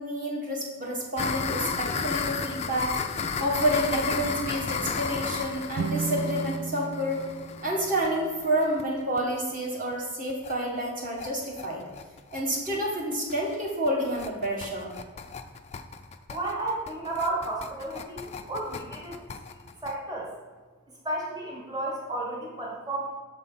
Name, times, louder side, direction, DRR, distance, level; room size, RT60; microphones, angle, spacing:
voice 1, 0.0-7.2 7.6-11.8 12.3-14.9, right 1 dB, 35° right, -2 dB, 1.6 m, -29 dB
sound 1, 1.2-8.8 9.2-9.3 9.5-9.6 9.9-10.0 10.3-10.5 10.9-19.9, left 5 dB, 30° left, 0.3 m, -33 dB
sound 2, 5.7-9.0, right 5 dB, 80° right, 0.4 m, -35 dB
voice 2, 16.3-19.2 19.8-20.3 21.0-23.1, right 2 dB, 20° right, -3 dB, 1.4 m, -32 dB
6.9 x 4.2 x 5.5 m, 1.4 s
head